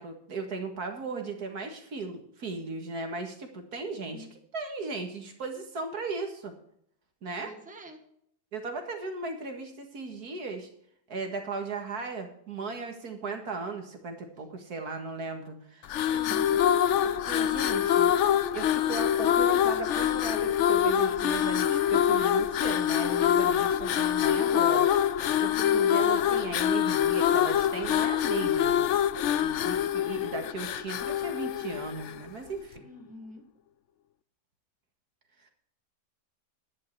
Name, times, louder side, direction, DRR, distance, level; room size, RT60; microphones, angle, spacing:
voice 1, 0.0-6.5 7.2-7.5 8.5-10.7 11.1-16.6 17.0-18.1 18.5-29.1 29.4-32.9, right 3 dB, 65° right, 4 dB, 2.3 m, -37 dB
voice 2, 7.4-8.0 16.0-16.6 25.4-25.9 32.8-33.4, equal, 5° right, 4 dB, 1.5 m, -47 dB
sound 1, 15.8-32.3, left 10 dB, 70° left, 0.7 m, -25 dB
11.0 x 10.5 x 4.6 m, 0.69 s
omnidirectional pair, 1.7 m